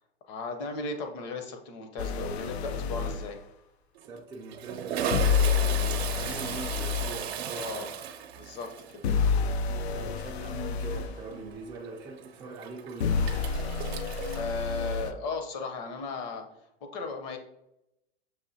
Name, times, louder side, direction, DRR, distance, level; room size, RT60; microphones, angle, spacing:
voice 1, 0.3-3.4 7.6-7.9 8.4-9.1 14.3-16.4 16.9-17.4, left 3 dB, 45° left, 5 dB, 0.8 m, -36 dB
sound 1, 2.0-3.3 5.1-7.2 9.0-11.2 13.0-15.1, left 6 dB, 85° left, 0.5 m, -28 dB
Toilet flush, 2.2-2.6 2.8-3.0 3.9-14.4, right 8 dB, 80° right, 0.7 m, -37 dB
voice 2, 4.0-7.9 9.7-13.4, right 3 dB, 10° right, -3 dB, 0.3 m, -43 dB
6.4 x 2.6 x 2.7 m, 0.84 s
hypercardioid pair, 130°, 32 cm